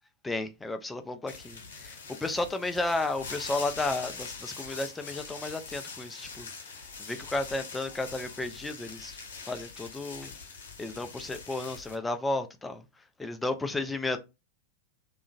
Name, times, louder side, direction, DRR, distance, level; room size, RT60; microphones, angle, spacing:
voice 1, 0.2-9.2 9.4-10.4 10.8-12.8 13.2-14.2, left 2 dB, 10° left, 0.4 m, -33 dB
sound 1, 1.3-11.9, left 5 dB, 60° left, 0.9 m, -43 dB
sound 2, 2.9-8.4, left 1 dB, 55° right, 1.1 m, -57 dB
2.7 x 2.4 x 2.4 m
figure-of-eight pair, 90°, 0 cm